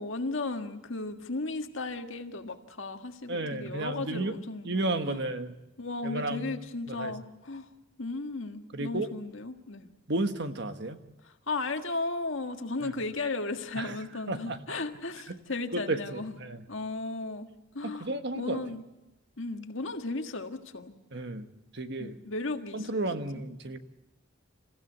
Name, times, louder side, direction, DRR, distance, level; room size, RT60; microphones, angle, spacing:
voice 1, 0.0-4.7 5.1-5.2 5.8-7.7 8.0-9.9 11.2-16.3 16.7-18.8 19.4-20.9 22.0-23.1, left 3 dB, 75° left, 6 dB, 1.7 m, -35 dB
voice 2, 3.3-4.4 4.6-5.5 6.0-6.5 6.9-7.1 8.7-9.1 10.1-11.0 12.8-12.9 13.8-13.9 14.3-14.6 15.3-15.4 15.7-16.6 17.8-18.6 21.1-21.5 21.7-22.2 22.7-23.8, right 2 dB, 60° right, 8 dB, 1.5 m, -32 dB
28.5 x 15.5 x 8.1 m, 0.99 s
head